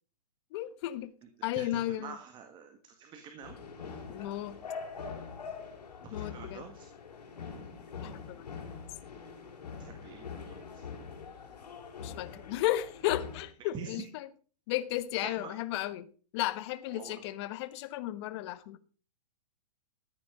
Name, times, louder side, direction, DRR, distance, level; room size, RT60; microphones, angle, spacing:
voice 1, 0.5-1.1 1.4-2.2 4.1-4.6 6.1-6.7 8.0-8.5 12.0-14.3 14.7-18.8, left 14 dB, 40° left, 1.2 m, -34 dB
voice 2, 1.5-3.6 6.0-6.9 9.8-10.8 13.7-14.0 15.2-15.6 16.9-17.2, right 6 dB, 25° right, 1.7 m, -46 dB
sound 1, 3.4-13.4, left 5 dB, 80° left, 5.3 m, -44 dB
14.0 x 9.6 x 5.1 m
hypercardioid pair, 135°, 20 cm